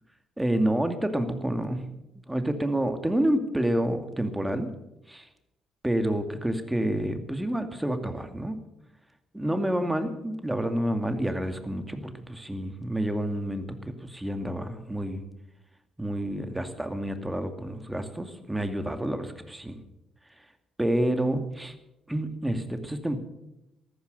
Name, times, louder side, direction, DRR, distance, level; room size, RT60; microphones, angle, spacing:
voice 1, 0.4-1.9 2.3-4.7 5.1-5.3 5.8-8.6 9.3-15.2 16.0-19.8 20.8-21.7 22.1-23.2, right 1 dB, 10° right, 8 dB, 2.4 m, -28 dB
14.5 x 14.0 x 6.7 m, 0.90 s
figure-of-eight pair, 45°, 0 cm